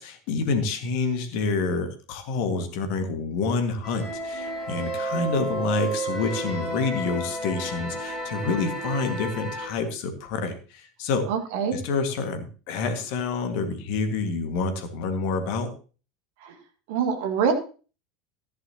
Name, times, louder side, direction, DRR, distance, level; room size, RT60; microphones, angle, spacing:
voice 1, 0.0-11.3 11.7-15.7, left 4 dB, 50° left, 7 dB, 1.9 m, -28 dB
sound 1, 3.8-9.7, right 1 dB, 30° right, 5.4 m, -32 dB
voice 2, 11.3-11.8 16.4-16.6 16.9-17.5, right 6 dB, 55° right, 6 dB, 1.9 m, -25 dB
14.5 x 10.5 x 2.9 m, 0.36 s
figure-of-eight pair, 75°, 0 cm